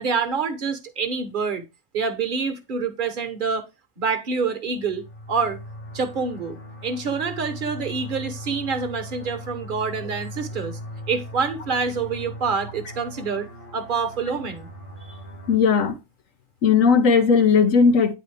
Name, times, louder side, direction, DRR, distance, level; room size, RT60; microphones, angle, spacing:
voice 1, 0.0-1.6 1.9-3.6 4.0-5.6 5.9-6.6 6.8-10.8 11.1-13.5 13.7-14.7 15.1-15.2, right 5 dB, 45° right, 1.0 m, -26 dB
sound 1, 4.7-15.6, equal, 70° left, 1.8 m, -39 dB
voice 2, 15.5-16.0 16.6-18.1, left 5 dB, 90° left, 1.4 m, -17 dB
9.2 x 4.1 x 3.3 m
omnidirectional pair, 1.4 m